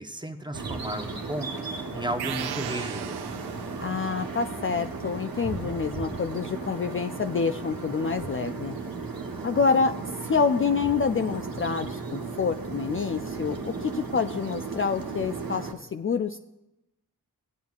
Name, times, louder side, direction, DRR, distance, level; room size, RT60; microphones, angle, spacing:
voice 1, 0.0-3.2, right 1 dB, 10° right, 6 dB, 0.9 m, -34 dB
sound 1, 0.5-15.7, right 4 dB, 60° right, 1.1 m, -35 dB
sound 2, 2.2-4.1, right 10 dB, 75° right, 0.5 m, -36 dB
voice 2, 3.8-8.7 9.4-10.0 10.3-16.4, left 5 dB, 35° left, 7 dB, 0.4 m, -27 dB
16.5 x 9.2 x 2.4 m, 0.94 s
cardioid pair, 40°, 39 cm